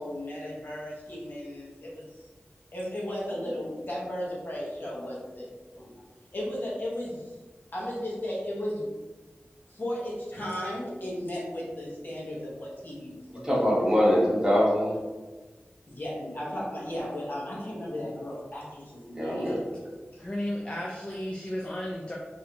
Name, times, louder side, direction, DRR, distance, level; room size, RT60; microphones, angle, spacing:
voice 1, 0.0-2.2 2.7-5.9 6.3-7.3 7.7-8.9 9.7-13.4 13.8-13.9 15.9-19.7 20.1-20.2, left 1 dB, 50° left, -6 dB, 1.1 m, -35 dB
voice 2, 3.3-3.7 20.2-22.2, left 1 dB, 25° left, -3 dB, 0.4 m, -34 dB
voice 3, 13.4-14.9 19.1-19.7, equal, 15° right, -7 dB, 1.2 m, -23 dB
3.2 x 2.7 x 2.8 m, 1.3 s
wide cardioid pair, 70°, 4 cm